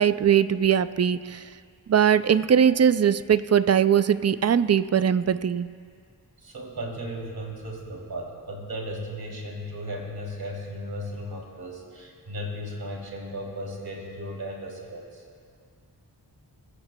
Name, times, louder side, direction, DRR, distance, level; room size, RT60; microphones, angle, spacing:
voice 1, 0.0-1.4 1.9-5.7, right 8 dB, 40° right, 14 dB, 0.4 m, -21 dB
voice 2, 6.4-15.2, equal, 70° right, -1 dB, 3.0 m, -36 dB
22.0 x 14.5 x 2.3 m, 2.1 s
wide cardioid pair, 50°, 39 cm